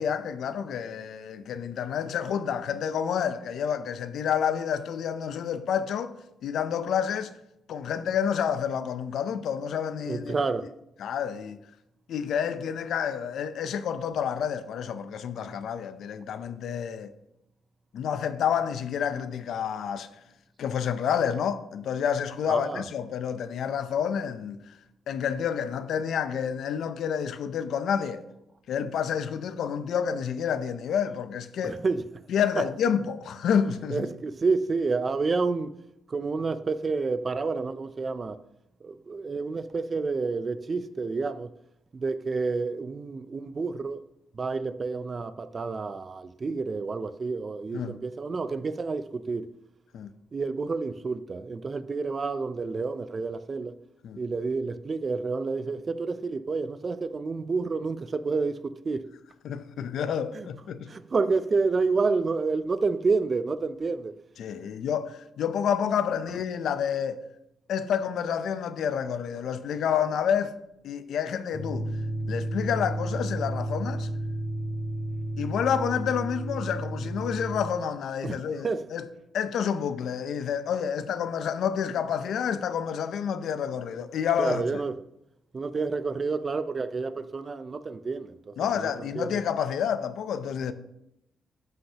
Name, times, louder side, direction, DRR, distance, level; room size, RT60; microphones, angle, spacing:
voice 1, 0.0-6.1 6.4-7.3 7.7-10.4 11.0-11.6 12.1-17.1 17.9-20.1 20.6-24.8 25.1-28.2 28.7-31.8 32.3-34.1 47.7-48.0 49.9-50.1 54.0-54.2 59.4-60.9 64.4-67.2 67.7-70.5 70.8-71.8 72.3-74.1 75.4-79.1 79.3-84.6 88.6-90.7, left 8 dB, 70° left, 0.5 m, -29 dB
voice 2, 10.0-10.8 22.5-22.8 31.6-32.0 32.6-32.7 33.9-35.8 36.1-38.4 38.8-41.5 41.9-44.0 44.3-49.5 50.3-53.7 54.2-59.0 60.3-60.5 60.9-64.1 78.2-78.9 84.4-85.0 85.5-89.4, right 4 dB, 30° right, 0.3 m, -29 dB
sound 1, 71.5-77.7, right 1 dB, 15° left, 0.8 m, -32 dB
12.5 x 5.7 x 2.9 m
cardioid pair, 145°, 0 cm